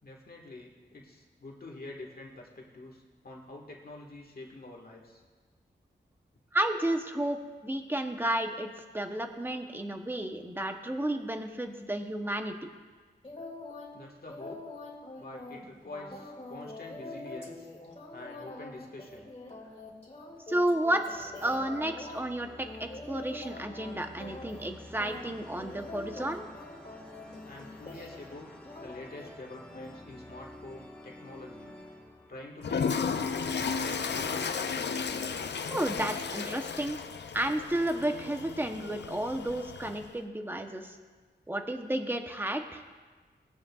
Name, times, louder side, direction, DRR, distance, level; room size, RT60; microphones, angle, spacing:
voice 1, 0.0-5.2 13.9-14.6 15.2-17.7 18.1-19.3 27.4-28.5 28.8-31.8 32.3-34.7, left 2 dB, 55° left, -1 dB, 1.7 m, -46 dB
voice 2, 6.5-7.4 7.6-8.7 8.9-12.5 20.5-26.4 35.7-37.0 37.3-41.0 41.5-42.8, right 1 dB, 10° right, 5 dB, 0.9 m, -32 dB
sound 1, 13.2-13.9 14.3-22.2 22.6-23.9 24.2-24.7 25.0-28.3 28.6-29.3 29.7-29.9, left 2 dB, 35° left, 2.3 m, -44 dB
sound 2, 19.1-20.3 20.9-33.5, left 1 dB, 5° left, 1.4 m, -51 dB
Toilet flush, 32.6-40.1, left 5 dB, 70° left, 0.5 m, -34 dB
20.0 x 9.3 x 2.4 m, 1.4 s
wide cardioid pair, 100°, 18 cm